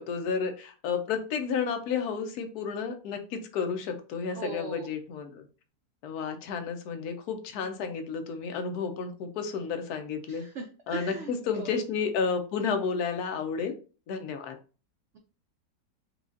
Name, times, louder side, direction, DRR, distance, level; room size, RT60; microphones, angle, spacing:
voice 1, 0.0-5.5 6.0-10.4 10.9-13.7 14.1-14.6, left 5 dB, 70° left, 6 dB, 1.1 m, -31 dB
voice 2, 4.4-4.9 10.3-11.3 11.6-11.7, right 4 dB, 80° right, 4 dB, 0.6 m, -38 dB
4.7 x 2.3 x 2.5 m, 0.35 s
omnidirectional pair, 1.8 m